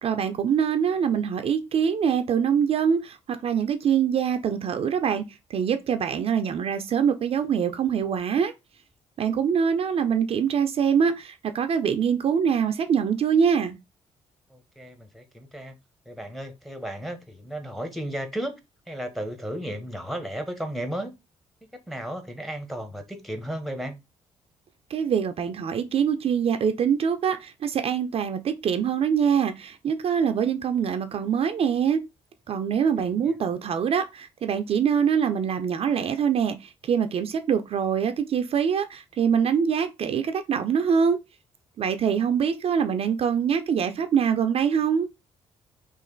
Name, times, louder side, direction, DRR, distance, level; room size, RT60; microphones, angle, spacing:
voice 1, 0.0-3.2 3.4-5.2 5.5-8.5 9.2-13.8 24.9-32.0 32.5-41.2 41.8-45.1, right 7 dB, 55° right, 0.5 m, -24 dB
voice 2, 14.5-15.7 16.1-18.6 18.9-21.1 21.9-24.0, right 1 dB, ahead, 1.0 m, -34 dB
3.2 x 2.5 x 3.8 m
cardioid pair, 80°, 12 cm